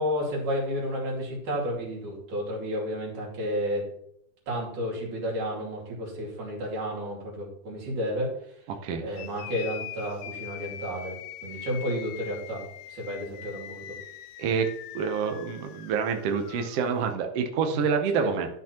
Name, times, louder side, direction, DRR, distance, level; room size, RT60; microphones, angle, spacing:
voice 1, 0.0-3.8 4.5-8.5 9.0-11.2 11.4-13.8 17.7-17.8 18.1-18.3, equal, 85° right, -3 dB, 4.1 m, -31 dB
voice 2, 8.7-9.0 14.4-14.7 14.9-18.5, right 6 dB, 65° right, 5 dB, 1.6 m, -27 dB
sound 1, 9.1-17.1, left 12 dB, 80° left, 1.5 m, -42 dB
12.5 x 6.0 x 2.9 m, 0.74 s
omnidirectional pair, 3.5 m